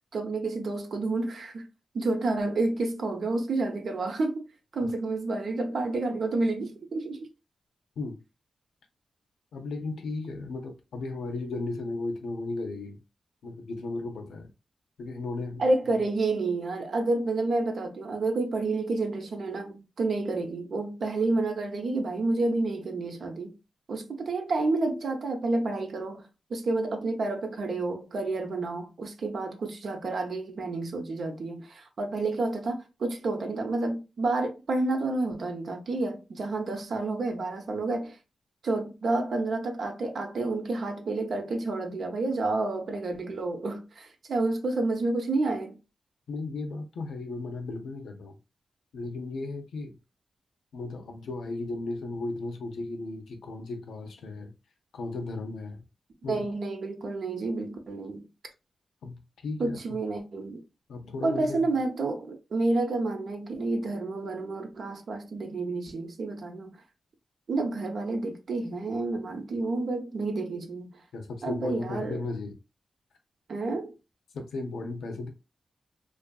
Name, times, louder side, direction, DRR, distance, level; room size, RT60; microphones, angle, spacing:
voice 1, 0.1-1.6 1.9-4.4 4.7-7.3 15.6-23.6 23.9-38.2 38.6-45.8 56.3-58.3 59.6-60.6 61.2-66.8 67.5-70.9 71.4-72.2 73.5-73.9, right 2 dB, 70° right, 0.6 m, -29 dB
voice 2, 9.5-13.0 13.4-14.5 15.0-15.6 46.3-48.4 48.9-49.9 50.7-54.5 54.9-55.9 56.2-56.5 59.0-60.0 60.9-61.7 71.1-72.6 74.3-75.3, left 3 dB, 85° left, 0.5 m, -35 dB
2.5 x 2.4 x 2.2 m
cardioid pair, 55°, 0 cm